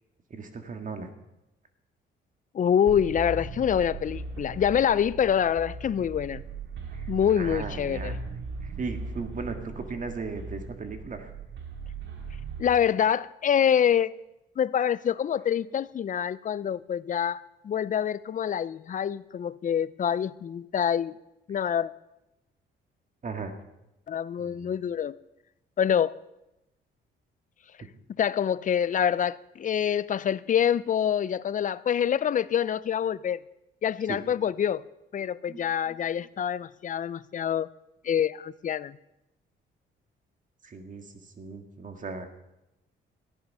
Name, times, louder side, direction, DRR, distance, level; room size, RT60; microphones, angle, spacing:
voice 1, 0.3-1.1 6.9-7.0 7.4-8.2 8.6-11.3 23.2-23.5 24.4-24.7 34.1-34.2 35.2-36.0 40.6-41.0 41.4-42.3, right 4 dB, 40° right, 1.9 m, -37 dB
voice 2, 2.5-6.4 7.1-8.2 12.6-14.1 14.6-21.1 21.5-21.9 24.1-25.2 25.8-26.1 28.2-33.4 33.8-34.8 35.1-37.7 38.0-39.0, left 9 dB, 40° left, 0.5 m, -26 dB
sound 1, 2.9-12.7, right 4 dB, 70° right, 2.6 m, -38 dB
14.5 x 10.5 x 5.6 m
cardioid pair, 90°, 20 cm